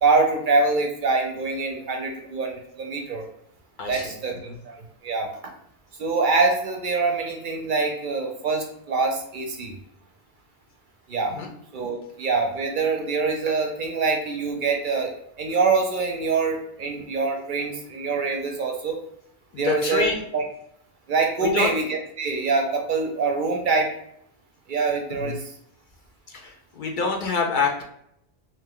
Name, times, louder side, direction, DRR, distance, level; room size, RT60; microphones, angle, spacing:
voice 1, 0.0-3.2 3.9-4.8 5.0-5.3 6.0-9.7 11.1-11.4 11.7-19.0 19.6-20.4 21.1-23.9 24.7-25.5, right 4 dB, 60° right, 2 dB, 0.6 m, -24 dB
voice 2, 3.8-4.1 11.4-11.5 19.5-20.2 21.4-21.7 25.2-25.4 26.3-27.8, left 4 dB, 60° left, 2 dB, 0.6 m, -26 dB
2.7 x 2.1 x 3.6 m, 0.74 s
omnidirectional pair, 1.0 m